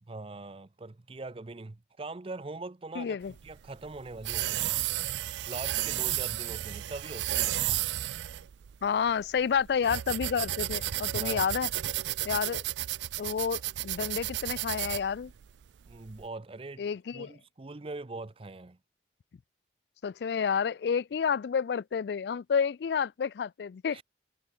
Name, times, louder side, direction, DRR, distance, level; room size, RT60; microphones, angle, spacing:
voice 1, 0.1-3.2 3.4-4.8 5.5-7.7 11.1-11.5 15.9-16.8 17.1-18.8 23.9-24.0, right 3 dB, 30° right, 0.5 m, -42 dB
voice 2, 3.0-3.3 8.8-11.7 12.2-12.6 13.2-15.3 16.8-17.3 20.0-24.0, left 6 dB, 70° left, 0.3 m, -30 dB
sound 1, 3.3-16.2, right 14 dB, 85° right, 0.4 m, -33 dB
head